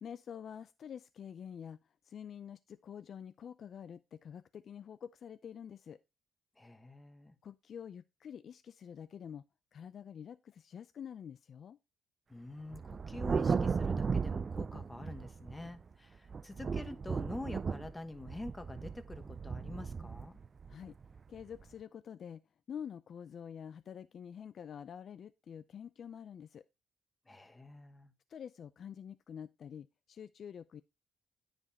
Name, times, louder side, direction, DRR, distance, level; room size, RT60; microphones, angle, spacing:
voice 1, 0.0-1.8 2.1-6.0 7.4-9.4 9.7-11.8 20.7-21.0 21.3-22.4 22.7-26.6 28.3-30.8, left 8 dB, 55° left, 0.4 m, -47 dB
voice 2, 6.6-7.3 12.3-20.4 27.3-28.1, left 2 dB, 15° left, 1.1 m, -47 dB
Thunder, 12.7-15.8 16.3-21.6, right 5 dB, 40° right, 0.3 m, -36 dB
9.7 x 5.2 x 2.8 m
cardioid pair, 90°, 0 cm